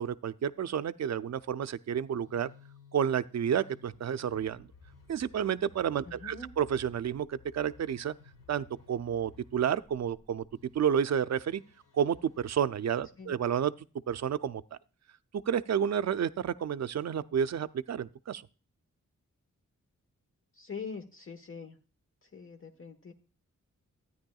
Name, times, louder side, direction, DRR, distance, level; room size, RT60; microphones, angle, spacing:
voice 1, 0.0-2.5 2.9-4.7 5.1-8.1 8.5-10.4 10.7-11.6 11.9-13.7 14.1-14.6 15.5-18.4, right 8 dB, 55° right, 0.5 m, -30 dB
sound 1, 1.8-13.6, left 4 dB, 85° left, 1.6 m, -58 dB
voice 2, 6.0-6.5 13.2-13.4 20.5-21.8 22.2-23.1, left 5 dB, 40° left, 1.2 m, -43 dB
13.5 x 9.6 x 2.3 m
cardioid pair, 65°, 32 cm